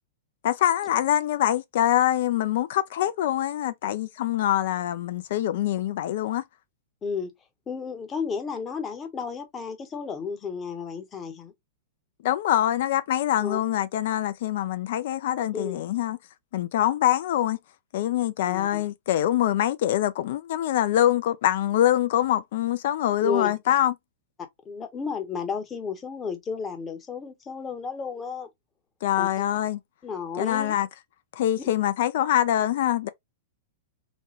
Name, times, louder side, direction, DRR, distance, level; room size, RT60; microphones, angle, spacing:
voice 1, 0.4-6.4 12.2-16.2 16.5-17.6 17.9-23.9 29.0-29.8 30.4-30.9 31.3-33.1, left 12 dB, 55° left, 0.3 m, -24 dB
voice 2, 7.0-7.3 7.7-11.5 13.4-13.6 15.5-15.9 18.5-18.8 23.2-23.5 24.4-28.5 29.2-29.3 30.0-30.7, left 5 dB, 20° left, 0.8 m, -33 dB
3.0 x 2.2 x 2.8 m
figure-of-eight pair, 100°, 0 cm